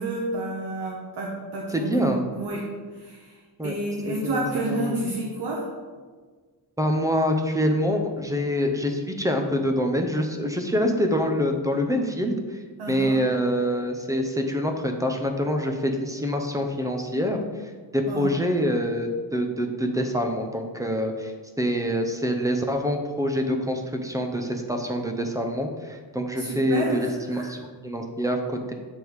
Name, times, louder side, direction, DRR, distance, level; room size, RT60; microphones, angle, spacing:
voice 1, 0.0-2.6 2.9-3.3 3.6-5.6 12.8-13.2 18.1-18.3 26.4-27.5, right 2 dB, 65° right, -3 dB, 1.1 m, -30 dB
voice 2, 1.7-2.3 3.6-3.7 4.1-4.9 6.8-12.6 12.9-17.4 17.9-21.3 21.6-28.7, equal, 10° right, 4 dB, 0.6 m, -25 dB
8.1 x 3.5 x 4.6 m, 1.5 s
wide cardioid pair, 145°, 43 cm